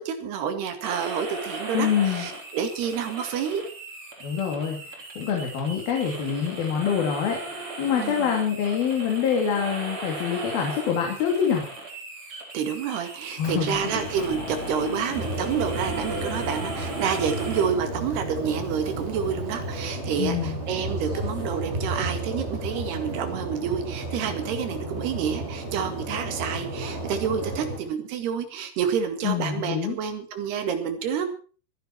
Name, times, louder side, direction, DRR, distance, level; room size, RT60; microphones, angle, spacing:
voice 1, 0.0-3.6 8.0-8.3 12.5-31.3, right 7 dB, 90° right, 8 dB, 4.2 m, -29 dB
sound 1, 0.8-17.7, right 2 dB, 35° right, 4.0 m, -38 dB
voice 2, 1.7-2.3 4.2-11.7 13.4-13.8 20.2-20.6 29.2-30.0, left 7 dB, 70° left, 2 dB, 4.5 m, -26 dB
Motor vehicle (road) / Engine, 13.4-19.9, left 2 dB, 45° left, 5.0 m, -38 dB
sound 2, 15.1-27.8, right 1 dB, 15° right, 4.4 m, -33 dB
24.0 x 10.5 x 4.5 m, 0.39 s
omnidirectional pair, 4.5 m